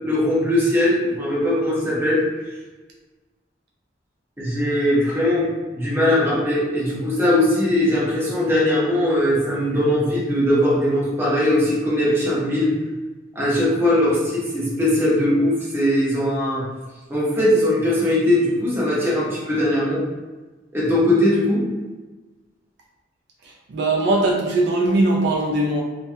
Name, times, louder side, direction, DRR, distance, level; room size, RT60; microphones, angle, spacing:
voice 1, 0.0-2.2 4.4-5.5 5.7-12.7 13.3-16.6 17.1-20.0 20.7-21.6, left 1 dB, 15° right, -8 dB, 0.7 m, -20 dB
voice 2, 23.7-25.8, right 2 dB, 65° right, -1 dB, 0.3 m, -20 dB
2.2 x 2.2 x 2.6 m, 1.2 s
head